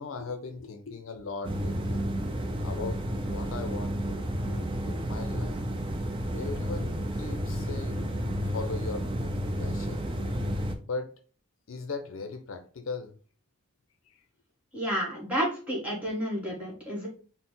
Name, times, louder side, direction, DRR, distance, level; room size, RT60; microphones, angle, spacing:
voice 1, 0.0-2.1 2.6-5.6 6.3-9.3 9.6-10.1 10.8-11.1 11.7-13.1 14.1-14.2, left 4 dB, 65° left, 0.5 m, -39 dB
sound 1, 1.4-10.8, equal, 25° right, 0.3 m, -31 dB
voice 2, 14.7-17.1, equal, 5° right, 1.3 m, -31 dB
4.0 x 2.0 x 3.8 m
head